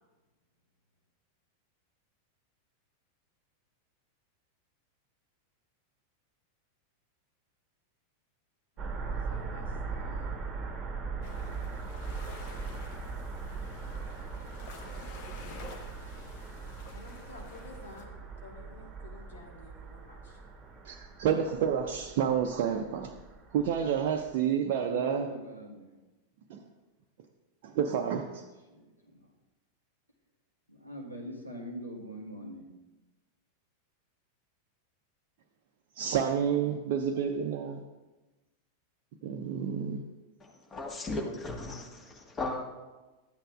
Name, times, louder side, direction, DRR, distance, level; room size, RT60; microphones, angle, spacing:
sound 1, 8.8-24.3, right 4 dB, 25° right, 1.1 m, -40 dB
voice 1, 9.0-10.4 16.9-20.4, left 3 dB, 65° left, 0 dB, 1.6 m, -51 dB
sound 2, 11.2-18.0, left 4 dB, 50° left, 1.2 m, -50 dB
voice 2, 20.8-23.1 23.5-25.3 26.5-26.6 27.6-28.4 36.0-37.8 39.2-40.0, right 8 dB, 50° right, 2 dB, 0.5 m, -29 dB
voice 3, 24.7-25.9 28.7-29.3 30.7-32.6, equal, 90° left, -3 dB, 1.6 m, -42 dB
voice 4, 40.4-42.6, left 2 dB, 20° left, 1 dB, 1.5 m, -36 dB
12.5 x 8.8 x 2.4 m, 1.1 s
figure-of-eight pair, 90°, 0 cm